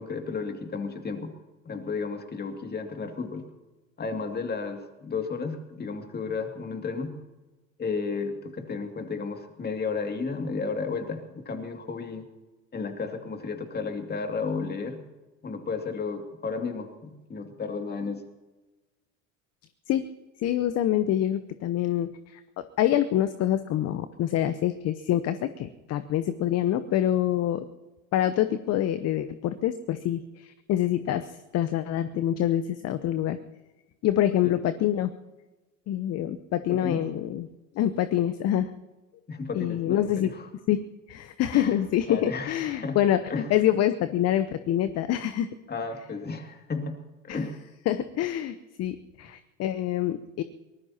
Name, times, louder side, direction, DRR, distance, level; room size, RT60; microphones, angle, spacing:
voice 1, 0.0-1.3 1.6-3.5 4.0-7.2 7.8-12.3 12.7-15.0 15.4-18.2 34.4-34.6 36.7-37.0 39.3-40.5 41.5-41.8 42.1-43.0 43.3-43.5 45.7-47.0 47.2-47.6, left 4 dB, 25° left, 5 dB, 2.5 m, -33 dB
voice 2, 20.4-22.4 22.8-27.6 28.1-33.4 34.0-35.1 35.9-37.5 37.8-38.7 39.5-40.3 40.7-40.8 41.1-43.2 43.5-45.5 47.3-47.4 47.9-50.4, left 12 dB, 40° left, 12 dB, 0.9 m, -26 dB
23.5 x 19.5 x 2.9 m, 1.1 s
figure-of-eight pair, 70°, 39 cm